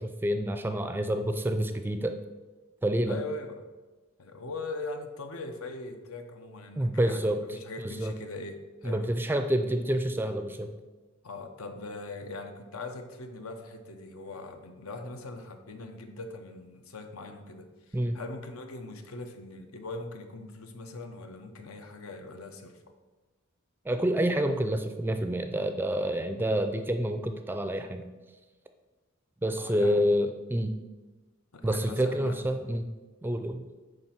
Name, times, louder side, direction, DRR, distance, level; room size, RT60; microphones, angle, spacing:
voice 1, 0.0-2.2 2.8-3.2 6.8-7.6 7.8-8.1 8.8-10.7 17.9-18.2 23.8-28.1 29.4-30.7 31.6-32.9 33.2-33.6, right 1 dB, 10° right, 7 dB, 0.3 m, -28 dB
voice 2, 3.1-3.7 4.2-9.1 11.2-22.8 29.6-30.0 31.5-32.4, left 2 dB, 90° left, 6 dB, 0.8 m, -41 dB
8.9 x 3.3 x 5.8 m, 1.2 s
head